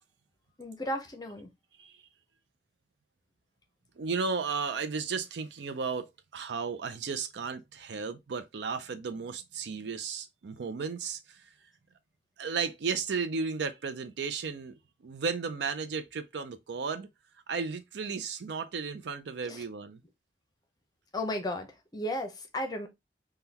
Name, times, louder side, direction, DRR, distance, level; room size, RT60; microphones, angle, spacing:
voice 1, 0.6-1.5 19.4-19.6 21.1-22.9, left 1 dB, 20° left, 0.6 m, -34 dB
voice 2, 4.0-11.4 12.4-17.1 17.5-20.0, right 5 dB, 75° right, 0.4 m, -34 dB
3.6 x 2.2 x 2.8 m
head